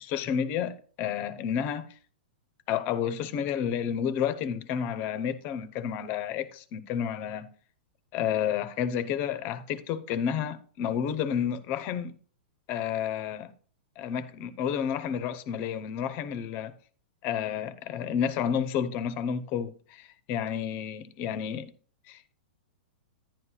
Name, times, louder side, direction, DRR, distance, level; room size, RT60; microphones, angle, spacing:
voice 1, 0.0-1.9 2.7-7.5 8.1-12.1 12.7-13.5 14.0-16.7 17.2-21.7 22.1-22.3, left 8 dB, 35° left, 0.7 m, -30 dB
10.5 x 9.6 x 2.3 m
hypercardioid pair, 140°, 5 cm